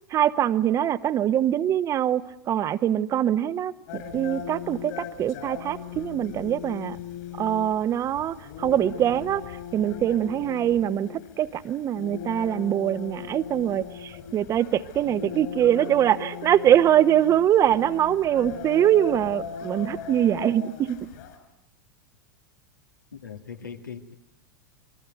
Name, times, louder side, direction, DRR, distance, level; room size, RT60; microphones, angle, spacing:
voice 1, 0.1-2.2 2.5-7.0 7.4-9.4 9.7-11.1 11.4-21.1, right 11 dB, 30° right, 13 dB, 1.2 m, -23 dB
sound 1, 3.9-21.3, left 8 dB, 60° left, 5.6 m, -39 dB
voice 2, 23.1-24.1, left 6 dB, 80° left, 4 dB, 2.3 m, -40 dB
28.0 x 22.0 x 9.4 m, 0.84 s
figure-of-eight pair, 90°, 10 cm